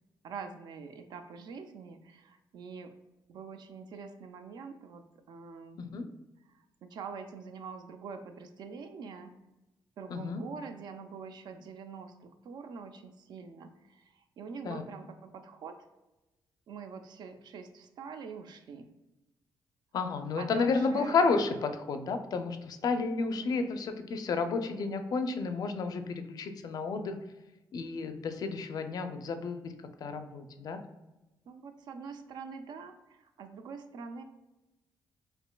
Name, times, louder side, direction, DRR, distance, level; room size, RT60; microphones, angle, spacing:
voice 1, 0.2-2.9 3.3-5.8 6.5-9.3 10.0-15.8 16.7-18.9 20.4-21.2 23.3-23.7 31.5-34.2, right 5 dB, 70° right, 7 dB, 0.4 m, -45 dB
voice 2, 10.1-10.4 14.6-14.8 19.9-27.2 27.7-29.7 30.0-30.8, left 4 dB, 60° left, 8 dB, 0.4 m, -31 dB
5.0 x 2.5 x 2.2 m, 1.0 s
cardioid pair, 100°, 8 cm